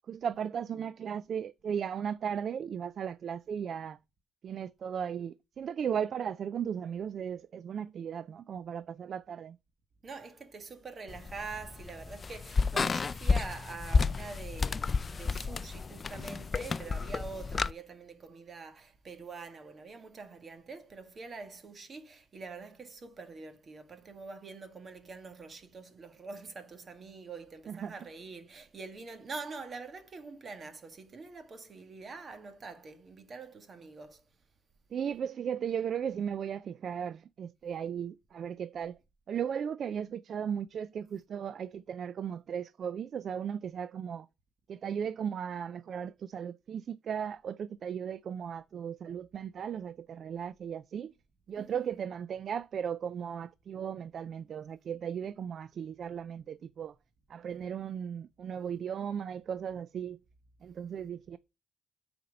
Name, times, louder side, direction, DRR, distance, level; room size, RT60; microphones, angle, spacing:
voice 1, 0.1-4.0 4.4-9.6 27.7-27.9 34.9-39.0 39.3-44.3 44.7-51.1 51.5-56.9 57.3-60.2 60.6-61.4, right 8 dB, 60° right, 0.3 m, -36 dB
voice 2, 10.0-34.2 51.6-51.9, right 4 dB, 40° right, 1.7 m, -45 dB
sound 1, 11.1-17.7, left 4 dB, 35° left, 0.4 m, -31 dB
9.3 x 4.3 x 5.3 m
cardioid pair, 90°, 0 cm